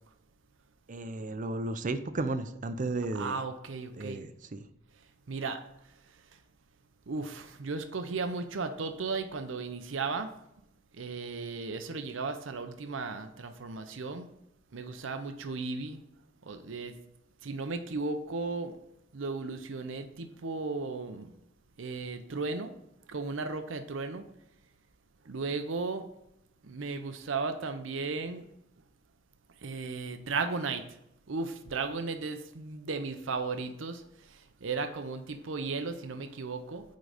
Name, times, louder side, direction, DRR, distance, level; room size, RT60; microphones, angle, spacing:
voice 1, 0.9-3.4 4.0-4.7, right 2 dB, 40° right, 11 dB, 0.5 m, -34 dB
voice 2, 3.1-4.2 5.3-5.6 7.1-10.3 10.9-14.3 14.7-16.0 16.4-16.9 17.4-18.7 19.1-21.3 21.8-22.7 23.1-24.2 25.3-26.0 26.6-28.5 29.6-30.8 31.3-34.0 34.3-36.8, right 4 dB, 80° right, 8 dB, 0.7 m, -35 dB
9.4 x 3.9 x 4.9 m, 0.80 s
head